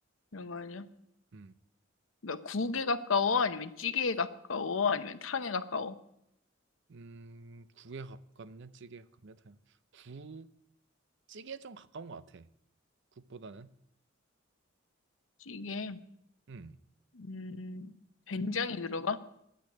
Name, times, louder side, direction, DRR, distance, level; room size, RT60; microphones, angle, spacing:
voice 1, 0.3-0.9 2.2-6.0 15.4-16.0 17.1-18.0 18.3-19.2, left 5 dB, 75° left, 11 dB, 0.8 m, -32 dB
voice 2, 6.9-9.6 9.9-10.5 11.3-12.5 13.2-13.7 16.5-16.8, right 4 dB, 65° right, 14 dB, 0.6 m, -47 dB
10.0 x 9.3 x 8.5 m, 0.78 s
head